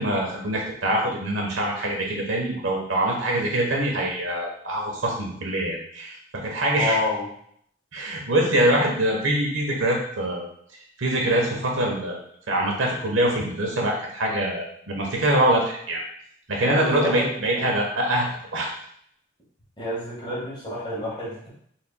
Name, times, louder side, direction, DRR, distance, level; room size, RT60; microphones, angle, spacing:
voice 1, 0.0-7.0 7.9-10.5 11.0-12.2 12.5-16.0 16.5-18.7, right 1 dB, 80° right, -1 dB, 1.1 m, -24 dB
voice 2, 6.8-7.3 16.6-17.3 17.5-17.7 19.8-21.5, left 2 dB, 25° left, -7 dB, 1.8 m, -29 dB
4.4 x 4.3 x 2.3 m, 0.66 s
head